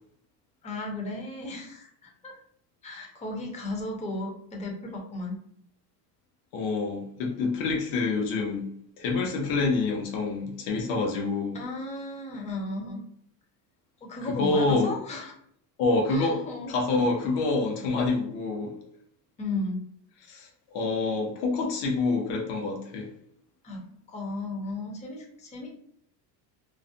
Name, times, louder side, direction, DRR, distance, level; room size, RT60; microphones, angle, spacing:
voice 1, 0.6-2.3 2.8-5.4 11.5-13.0 14.0-15.3 16.1-16.7 19.4-19.8 23.6-23.8 24.1-25.7, left 2 dB, 15° left, 0 dB, 0.4 m, -35 dB
voice 2, 6.5-8.7 9.0-11.6 14.2-14.9 15.8-18.7 20.2-20.5 20.7-23.1, left 3 dB, 75° left, 0 dB, 0.8 m, -27 dB
2.4 x 2.1 x 2.5 m, 0.67 s
cardioid pair, 125°, 47 cm